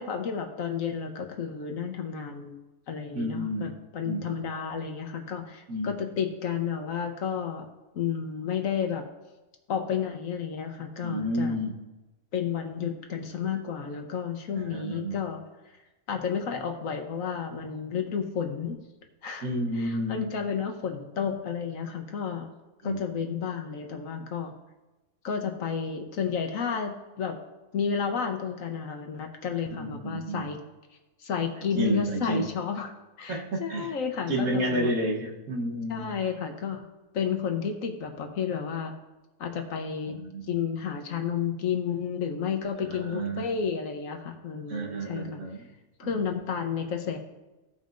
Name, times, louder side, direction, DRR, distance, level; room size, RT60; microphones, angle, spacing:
voice 1, 0.0-2.5 2.9-7.7 7.9-9.0 9.7-11.6 12.3-15.4 16.1-18.8 19.2-19.5 19.7-22.5 22.8-24.6 25.2-27.4 27.7-30.6 31.2-32.9 33.2-34.9 35.9-36.8 37.1-38.9 39.4-40.2 40.5-45.4 46.0-47.2, left 7 dB, 60° left, 5 dB, 1.1 m, -31 dB
voice 2, 3.1-3.7 4.0-4.4 5.7-5.9 11.0-11.7 14.5-15.2 19.4-20.3 22.8-23.0 29.6-30.5 31.7-32.5 33.3-33.9 34.3-36.1 40.1-40.5 42.9-43.5 44.7-45.6 46.0-46.2, right 1 dB, 65° right, 0 dB, 1.5 m, -31 dB
15.5 x 5.5 x 2.5 m, 1.1 s
omnidirectional pair, 1.7 m